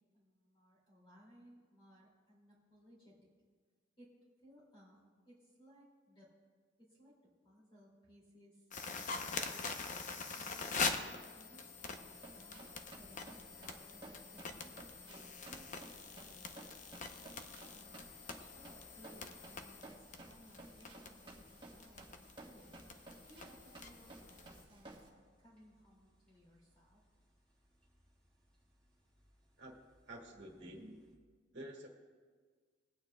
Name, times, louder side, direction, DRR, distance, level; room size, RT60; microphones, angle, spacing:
voice 1, 0.1-3.3 4.0-4.1 4.4-6.3 6.8-7.2 7.4-9.8 10.3-12.7 12.9-14.8 15.0-16.6 17.0-17.5 17.7-22.7 23.3-27.0, equal, 25° left, -5 dB, 2.4 m, -63 dB
sound 1, 8.7-24.6, left 4 dB, 45° left, 0.7 m, -44 dB
Run, 11.8-25.1, right 2 dB, 25° right, 1.4 m, -56 dB
sound 2, 15.9-31.2, equal, 5° left, 3.1 m, -74 dB
voice 2, 30.1-31.0 31.5-31.9, right 1 dB, 70° right, -1 dB, 1.6 m, -49 dB
22.0 x 8.9 x 2.2 m, 1.5 s
head